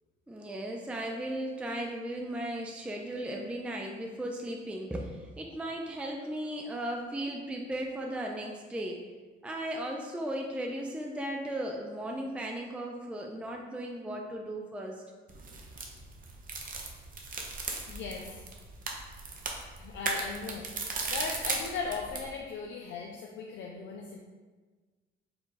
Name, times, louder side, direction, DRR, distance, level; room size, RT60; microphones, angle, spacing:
voice 1, 0.3-9.0 9.4-15.0, right 1 dB, 5° right, 1 dB, 0.4 m, -36 dB
sound 1, 15.3-22.3, right 3 dB, 45° right, 0.7 m, -37 dB
voice 2, 17.9-18.4 19.8-20.7 21.1-24.2, left 5 dB, 70° left, 0 dB, 0.5 m, -38 dB
4.8 x 2.3 x 3.8 m, 1.4 s
cardioid pair, 90°, 20 cm